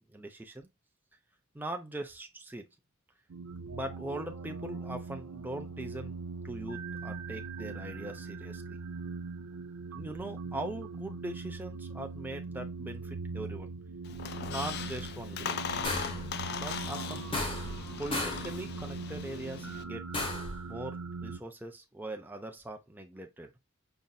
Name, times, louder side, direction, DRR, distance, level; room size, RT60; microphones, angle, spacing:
voice 1, 0.1-0.7 1.5-2.7 3.7-6.2 6.4-8.8 9.9-13.7 14.5-15.6 16.6-17.3 18.0-20.1 20.7-23.5, right 1 dB, 10° right, 0.5 m, -41 dB
sound 1, 3.3-21.4, right 4 dB, 75° right, 0.5 m, -41 dB
Squeak, 14.0-19.8, left 7 dB, 50° left, 0.4 m, -39 dB
sound 2, 15.8-16.3 17.3-17.8 18.1-18.5 20.1-20.6, left 2 dB, 25° left, 1.0 m, -34 dB
5.4 x 2.6 x 2.2 m
head